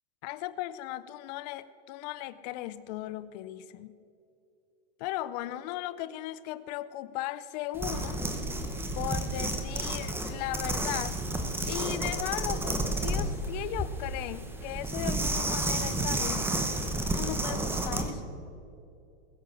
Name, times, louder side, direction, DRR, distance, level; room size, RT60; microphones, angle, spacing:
voice 1, 0.2-4.0 5.0-8.2 9.0-11.2 11.7-16.5 17.1-18.3, left 14 dB, 45° left, 16 dB, 0.5 m, -37 dB
sound 1, 7.7-18.1, right 1 dB, 5° right, 1.0 m, -31 dB
20.5 x 7.6 x 6.3 m, 2.7 s
supercardioid pair, 145°, 31 cm